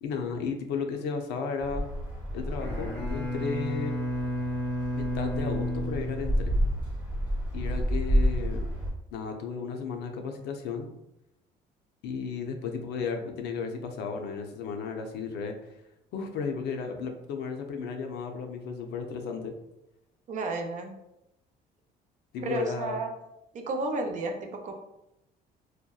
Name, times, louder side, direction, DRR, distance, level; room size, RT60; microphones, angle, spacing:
voice 1, 0.0-1.9 2.3-3.9 4.9-6.5 7.5-8.7 9.1-10.9 12.0-15.7 16.1-19.6 22.3-23.0, left 5 dB, 80° left, 4 dB, 0.4 m, -34 dB
sound 1, 1.6-8.9, equal, 10° right, 0.9 m, -30 dB
Bowed string instrument, 2.6-6.8, equal, 10° left, 0.6 m, -32 dB
voice 2, 20.3-21.0 22.4-23.2 23.5-24.7, right 2 dB, 45° right, 3 dB, 0.4 m, -32 dB
2.7 x 2.1 x 2.3 m, 0.87 s
cardioid pair, 110°, 17 cm